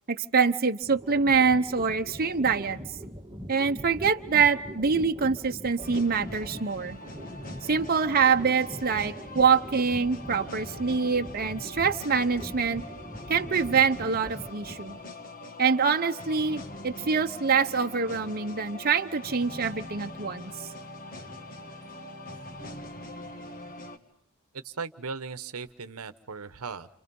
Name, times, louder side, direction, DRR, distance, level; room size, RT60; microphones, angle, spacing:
voice 1, 0.1-2.8 3.5-7.0 7.6-12.8 13.3-15.0 15.6-20.5, right 5 dB, 45° right, 6 dB, 1.0 m, -25 dB
sound 1, 0.8-15.0, equal, 15° right, 1.9 m, -42 dB
sound 2, 5.8-24.0, left 1 dB, 40° left, 1.9 m, -43 dB
voice 2, 24.6-26.9, right 5 dB, 90° right, 12 dB, 1.1 m, -37 dB
29.5 x 28.0 x 5.5 m, 0.69 s
head